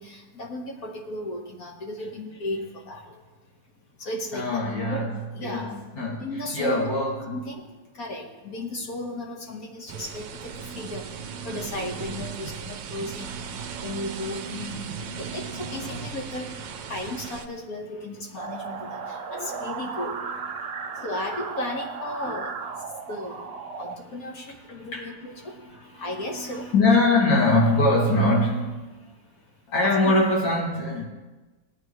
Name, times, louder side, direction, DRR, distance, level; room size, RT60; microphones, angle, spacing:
voice 1, 0.0-3.1 4.0-4.6 4.9-5.8 6.1-6.9 7.3-7.7 7.9-11.1 11.4-13.3 13.8-14.9 15.2-16.5 16.9-20.2 21.0-22.6 23.1-23.4 23.8-25.6 26.0-26.7 29.8-29.9 30.5-30.6, left 1 dB, 55° left, 1.8 m, -34 dB
voice 2, 4.3-7.4 10.4-12.2 13.0-16.1 17.3-17.4 18.3-18.4 19.3-19.7 20.1-21.1 22.2-22.4 23.0-23.1 23.6-23.8 24.3-29.1 29.7-31.0, left 2 dB, 80° left, 3.3 m, -26 dB
sound 1, 9.9-17.5, right 7 dB, 90° right, 1.5 m, -37 dB
sound 2, 18.4-23.9, right 5 dB, 60° right, 0.6 m, -35 dB
19.5 x 9.2 x 3.2 m
omnidirectional pair, 2.0 m